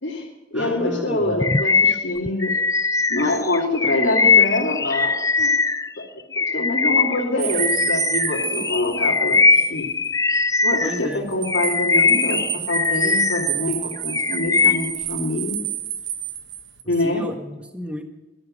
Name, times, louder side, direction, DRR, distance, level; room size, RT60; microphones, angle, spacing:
voice 1, 0.0-2.5 3.1-5.5 6.0-6.1 6.4-9.8 10.6-15.6 16.9-17.2, left 2 dB, 80° left, -3 dB, 2.8 m, -25 dB
voice 2, 0.5-1.3 10.8-11.3 17.0-18.0, equal, 5° right, 5 dB, 1.5 m, -31 dB
Bird vocalization bird call bird song, 1.4-5.9 6.3-11.1 11.5-13.5 13.9-15.0, left 4 dB, 15° left, 0.4 m, -20 dB
sound 1, 7.4-9.7 10.0-10.1 11.1-16.8, right 11 dB, 80° right, 1.2 m, -30 dB
14.5 x 12.0 x 5.3 m, 1.1 s
head